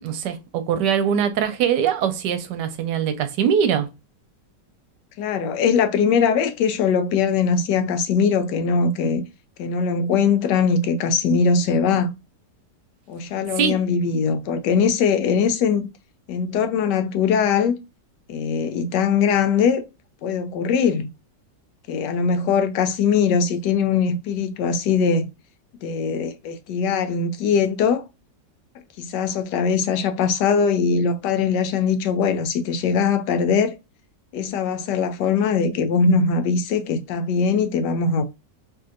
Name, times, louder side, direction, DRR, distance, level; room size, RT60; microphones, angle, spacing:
voice 1, 0.0-3.9 13.5-13.8, right 8 dB, 75° right, 1.2 m, -22 dB
voice 2, 5.2-9.2 9.6-12.1 13.1-15.9 16.3-17.8 18.3-19.8 20.2-21.1 21.9-25.3 25.8-28.0 29.0-33.7 34.3-38.2, left 6 dB, 75° left, 1.1 m, -21 dB
3.2 x 2.7 x 2.4 m
omnidirectional pair, 1.9 m